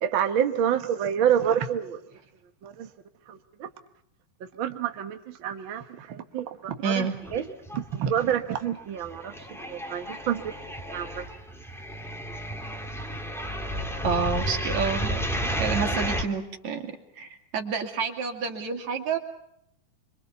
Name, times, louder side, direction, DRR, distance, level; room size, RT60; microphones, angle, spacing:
voice 1, 0.0-2.0 2.6-2.9 3.3-3.7 4.4-7.4 7.7-10.5 10.9-11.2, right 9 dB, 85° right, 7 dB, 1.1 m, -28 dB
voice 2, 6.8-7.1 14.0-15.2 15.6-19.2, right 5 dB, 50° right, 5 dB, 3.4 m, -29 dB
sound 1, 7.2-7.9 8.2-16.2, equal, ahead, 1.2 m, -32 dB
26.5 x 24.0 x 7.0 m, 0.74 s
omnidirectional pair, 4.5 m